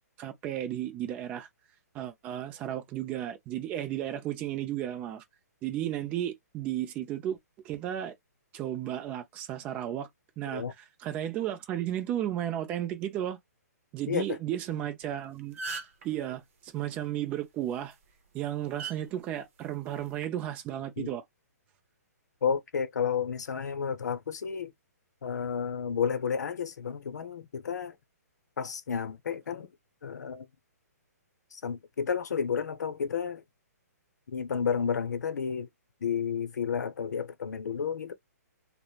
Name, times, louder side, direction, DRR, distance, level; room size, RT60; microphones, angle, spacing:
voice 1, 0.2-1.5 1.9-5.2 5.6-7.4 7.6-8.1 8.5-10.1 10.4-13.4 13.9-15.6 16.0-18.0 18.3-21.2, right 11 dB, 15° right, 0.3 m, -34 dB
voice 2, 14.1-14.4 21.0-21.1 22.4-24.7 25.2-28.0 28.6-29.7 30.0-30.5 31.5-33.4 34.3-35.7 36.0-38.1, left 7 dB, 85° left, 0.6 m, -31 dB
sound 1, 15.0-15.1 15.4-16.1 17.7-17.9 18.8-19.0 20.0-20.2, right 4 dB, 50° right, 0.8 m, -37 dB
3.0 x 2.0 x 2.2 m
hypercardioid pair, 160°, 9 cm